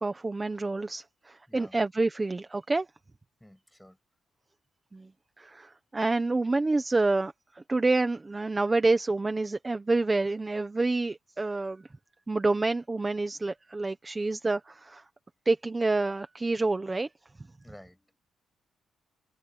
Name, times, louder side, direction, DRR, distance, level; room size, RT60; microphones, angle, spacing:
voice 1, 0.0-2.9 4.9-5.1 5.4-11.8 12.3-15.0 15.4-17.1, right 3 dB, 15° right, 1.2 m, -28 dB
voice 2, 3.4-4.0 17.6-18.2, equal, 5° left, 6.3 m, -52 dB
cardioid pair, 160°, 0 cm